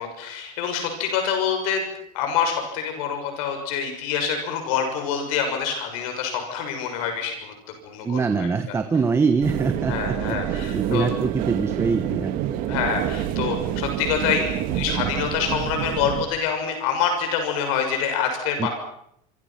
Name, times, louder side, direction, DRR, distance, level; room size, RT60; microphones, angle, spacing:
voice 1, 0.0-1.8 2.1-7.5 7.8-8.5 9.9-11.1 12.7-18.7, left 7 dB, 75° left, 5 dB, 6.7 m, -26 dB
voice 2, 8.0-12.3 18.6-18.7, right 5 dB, 15° right, 8 dB, 1.2 m, -24 dB
sound 1, 9.4-16.3, right 11 dB, 50° right, 2.3 m, -27 dB
27.5 x 25.0 x 6.0 m, 0.73 s
cardioid pair, 165°, 18 cm